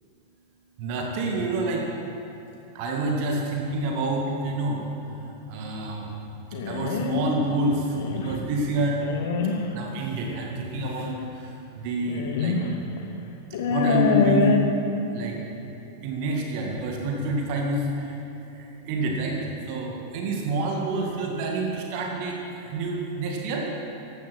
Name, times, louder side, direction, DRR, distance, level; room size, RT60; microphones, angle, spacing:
voice 1, 0.8-1.9 2.7-4.8 5.5-6.1 6.6-9.0 9.7-11.5 11.8-12.6 13.7-14.6 15.1-15.4 16.0-18.1 18.6-19.4 19.7-23.7, right 2 dB, 45° right, 0 dB, 2.0 m, -28 dB
sound 1, 6.5-7.3 7.9-8.4 9.0-9.6 10.8-10.9 12.1-12.7 13.0-13.1 13.5-14.6, left 4 dB, 55° left, 1.3 m, -24 dB
16.0 x 11.5 x 6.2 m, 2.9 s
figure-of-eight pair, 90°, 0 cm